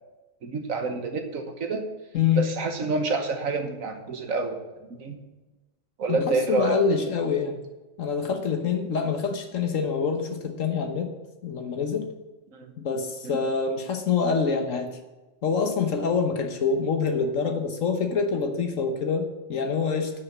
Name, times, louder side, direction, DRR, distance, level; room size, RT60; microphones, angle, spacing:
voice 1, 0.4-1.8 2.4-5.2 6.0-6.8 12.5-12.7 13.2-13.4, right 3 dB, 80° right, 5 dB, 1.6 m, -28 dB
voice 2, 2.1-2.5 6.1-7.6 8.0-11.1 11.4-12.1 12.8-15.0 15.4-20.1, left 5 dB, 70° left, 5 dB, 1.4 m, -26 dB
9.9 x 6.7 x 7.3 m, 1.1 s
omnidirectional pair, 1.4 m